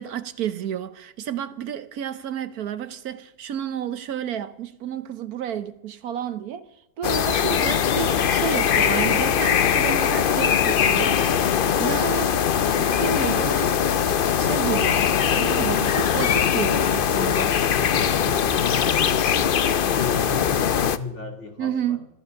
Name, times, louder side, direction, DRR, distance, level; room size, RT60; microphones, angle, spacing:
voice 1, 0.0-6.7 7.0-12.3 12.8-17.6 21.6-22.1, right 9 dB, 70° right, 1.3 m, -31 dB
sound 1, 7.0-21.0, left 8 dB, 65° left, 0.5 m, -21 dB
voice 2, 17.7-19.0 19.2-22.0, left 3 dB, 45° left, 2.8 m, -36 dB
14.0 x 13.5 x 6.4 m
omnidirectional pair, 1.7 m